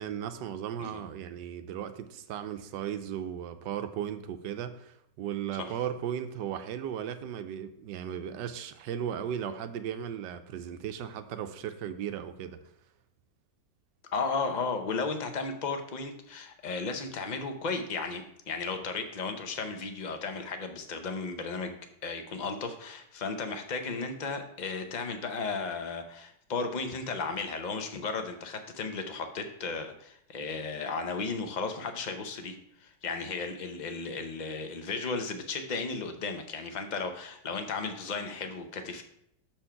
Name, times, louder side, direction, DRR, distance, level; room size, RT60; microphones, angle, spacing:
voice 1, 0.0-12.6, right 9 dB, 85° right, 9 dB, 1.3 m, -36 dB
voice 2, 14.1-39.0, left 4 dB, 55° left, 6 dB, 0.5 m, -35 dB
6.9 x 4.5 x 5.7 m, 0.74 s
omnidirectional pair, 1.9 m